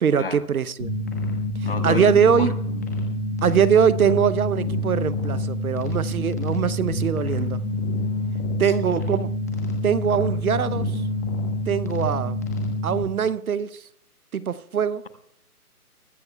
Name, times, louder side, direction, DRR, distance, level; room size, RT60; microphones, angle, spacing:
voice 1, 0.0-0.9 1.8-2.5 3.4-7.6 8.6-9.3 9.8-11.0 11.7-12.4 12.8-13.8 14.3-15.0, right 7 dB, 70° right, 0.8 m, -22 dB
sound 1, 0.8-13.0, left 1 dB, 10° left, 1.1 m, -27 dB
voice 2, 1.6-2.8 8.6-8.7, left 5 dB, 40° left, 1.1 m, -30 dB
22.0 x 14.0 x 2.3 m
hypercardioid pair, 175°, 45 cm